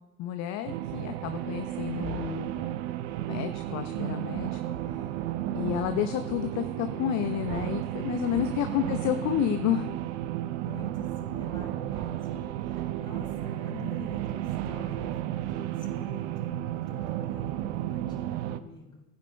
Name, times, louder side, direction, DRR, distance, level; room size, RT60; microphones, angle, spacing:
voice 1, 0.2-2.7 3.3-5.1 5.5-9.9, left 10 dB, 40° left, 9 dB, 0.6 m, -30 dB
sound 1, 0.6-18.6, right 13 dB, 50° right, 0.7 m, -33 dB
voice 2, 8.6-8.9 10.6-19.0, left 3 dB, 10° left, -3 dB, 4.3 m, -47 dB
18.5 x 9.9 x 2.3 m, 1.1 s
figure-of-eight pair, 75°, 45 cm